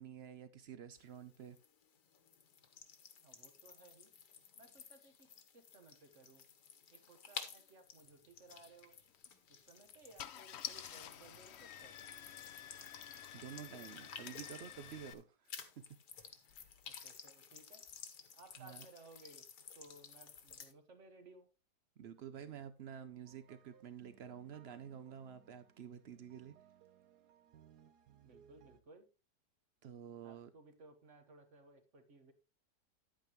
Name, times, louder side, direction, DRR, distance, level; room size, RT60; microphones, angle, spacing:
voice 1, 0.0-1.6 13.3-15.9 16.2-16.3 18.6-18.9 22.0-26.6 29.8-30.5, right 8 dB, 85° right, 0.5 m, -50 dB
sound 1, 1.0-15.2 15.5-20.7, left 7 dB, 70° left, 1.7 m, -54 dB
voice 2, 3.2-4.1 4.5-5.3 5.5-6.4 6.9-9.0 9.5-12.0 16.8-17.8 18.4-19.4 19.7-21.5 28.2-29.1 30.2-32.3, right 3 dB, 45° right, 1.5 m, -60 dB
Car / Engine starting, 9.1-9.3 9.9-10.0 10.2-15.1, left 10 dB, 90° left, 0.5 m, -50 dB
sound 2, 23.2-28.8, right 9 dB, 65° right, 1.3 m, -65 dB
10.5 x 8.8 x 3.0 m
omnidirectional pair, 1.9 m